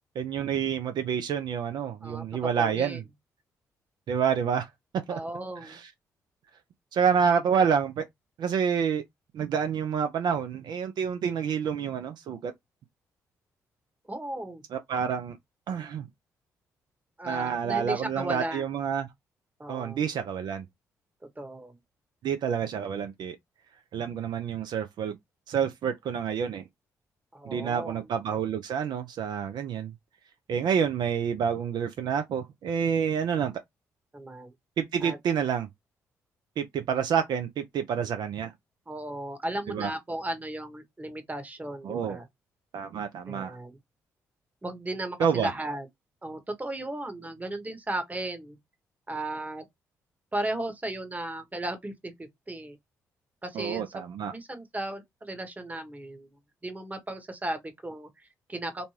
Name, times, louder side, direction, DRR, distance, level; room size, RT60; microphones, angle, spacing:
voice 1, 0.2-3.0 4.1-4.7 5.1-5.2 5.6-5.9 6.9-8.0 8.4-9.0 9.3-12.5 14.7-15.4 15.7-16.1 17.2-19.1 19.7-20.7 22.2-23.4 23.9-25.1 25.5-26.6 27.5-29.9 30.5-33.5 34.8-35.7 36.6-38.5 39.7-39.9 41.8-42.2 42.7-43.6 45.2-45.5 53.5-54.3, right 7 dB, 60° right, 0.4 m, -28 dB
voice 2, 2.0-3.0 5.1-5.8 14.1-14.6 17.2-18.6 19.6-20.0 21.4-21.8 27.3-28.1 34.1-34.5 35.0-35.2 38.9-42.3 43.3-43.7 44.6-45.9 46.2-48.6 49.1-49.6 50.3-52.8 53.4-54.0 54.3-56.3 56.6-58.8, right 1 dB, 20° right, 1.0 m, -35 dB
2.6 x 2.2 x 3.1 m
hypercardioid pair, 45°, 8 cm